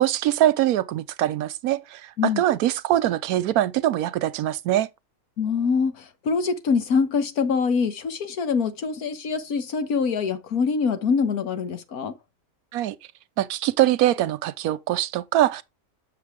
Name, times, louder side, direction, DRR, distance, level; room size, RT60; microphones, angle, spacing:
voice 1, 0.0-4.9 12.7-13.0 13.4-15.6, right 13 dB, 90° right, 1.1 m, -23 dB
voice 2, 5.4-12.1, left 5 dB, 80° left, 1.7 m, -24 dB
7.4 x 6.7 x 3.6 m
omnidirectional pair, 1.5 m